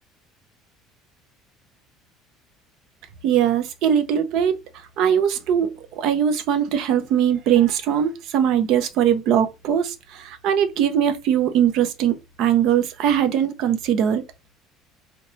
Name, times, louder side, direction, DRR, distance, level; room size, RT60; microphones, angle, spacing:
voice 1, 3.2-4.6 5.0-5.7 6.0-14.2, right 9 dB, 55° right, 0.6 m, -20 dB
3.9 x 2.2 x 2.9 m
cardioid pair, 165°, 0 cm